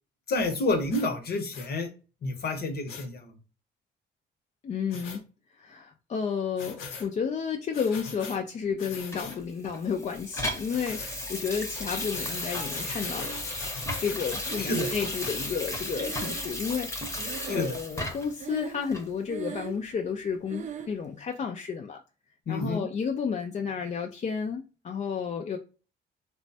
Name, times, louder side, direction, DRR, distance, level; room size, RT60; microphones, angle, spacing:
voice 1, 0.3-1.9 2.2-3.2 14.6-14.9 17.5-17.7 22.5-22.9, left 2 dB, 55° left, 0.8 m, -29 dB
sound 1, 0.9-1.1 1.5-1.7 2.9-3.0 4.9-5.2 6.6-7.1 7.7-8.4 8.8-9.4 10.7-11.1 11.7-15.5, left 5 dB, 90° left, 0.8 m, -41 dB
voice 2, 4.6-5.2 5.6-13.4 14.0-22.0 22.5-25.6, left 6 dB, 35° left, 0.4 m, -32 dB
Water tap faucet / Sink (filling or washing), 9.1-18.4 18.9-19.1, left 1 dB, 15° left, 0.8 m, -35 dB
Breathing, 13.1-13.9 14.4-16.9 17.2-18.0 18.4-19.0 19.2-19.9 20.5-21.0, right 8 dB, 40° right, 0.4 m, -39 dB
3.1 x 2.2 x 2.7 m
cardioid pair, 90°, 20 cm